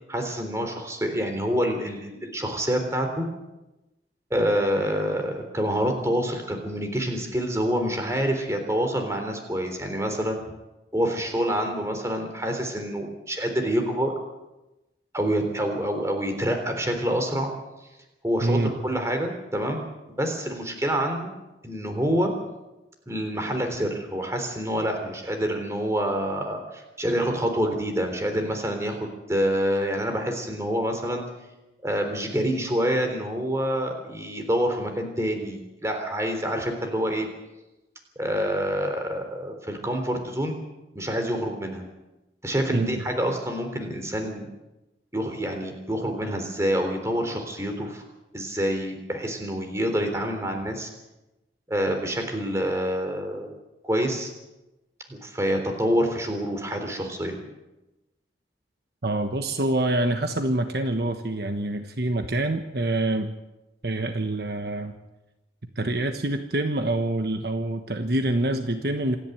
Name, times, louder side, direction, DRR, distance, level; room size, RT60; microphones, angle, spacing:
voice 1, 0.1-3.3 4.3-10.4 10.9-14.1 15.1-17.5 18.2-19.9 20.2-21.3 21.6-22.3 23.1-31.2 31.8-37.3 38.2-40.6 40.9-41.8 42.4-44.5 45.1-48.0 48.3-50.9 51.7-53.5 53.8-54.3 55.1-57.4, equal, 15° right, 5 dB, 3.6 m, -27 dB
voice 2, 18.4-18.7 42.7-43.0 59.0-63.3 63.8-64.9 65.8-69.2, right 1 dB, 55° right, 6 dB, 1.3 m, -26 dB
27.0 x 11.0 x 9.2 m, 1.0 s
head